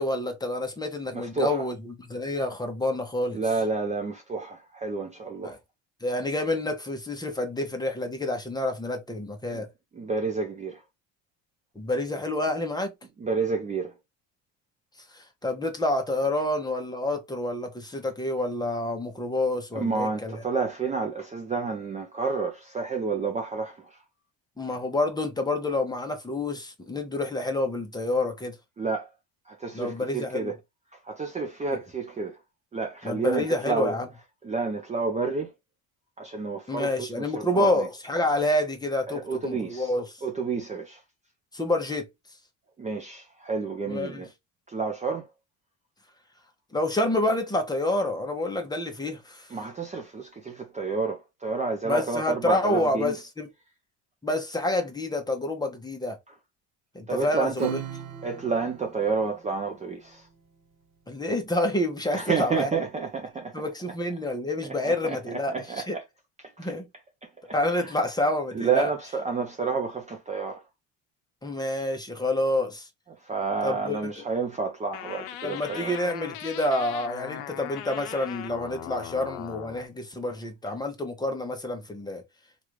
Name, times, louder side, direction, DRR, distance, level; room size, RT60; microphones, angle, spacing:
voice 1, 0.0-3.4 5.4-5.6 6.0-9.7 11.7-12.9 15.1-20.4 24.6-28.6 29.7-30.5 31.7-31.8 33.0-34.1 36.7-40.2 41.5-42.1 43.9-44.3 46.7-49.6 51.8-53.5 54.2-56.2 56.9-57.8 61.1-63.1 63.5-66.0 66.6-66.9 67.5-68.9 71.4-72.9 73.6-74.2 75.4-82.2, left 1 dB, 10° left, 0.9 m, -28 dB
voice 2, 1.1-1.6 3.3-5.5 9.5-9.6 10.0-10.8 13.2-13.9 19.7-24.0 28.8-29.1 29.5-30.5 31.0-32.4 32.7-33.9 34.4-35.5 36.2-37.9 39.1-39.9 40.2-41.0 42.8-44.3 44.7-45.3 49.5-53.1 57.1-57.7 58.2-60.3 62.1-63.6 64.8-66.0 66.6-66.7 67.2-67.3 68.5-70.6 73.2-75.9, right 4 dB, 20° right, 0.6 m, -30 dB
Acoustic guitar / Strum, 57.5-60.5, right 7 dB, 40° right, 1.1 m, -39 dB
sound 1, 74.9-79.9, left 11 dB, 75° left, 0.7 m, -39 dB
3.1 x 2.6 x 3.1 m
supercardioid pair, 110°, 39 cm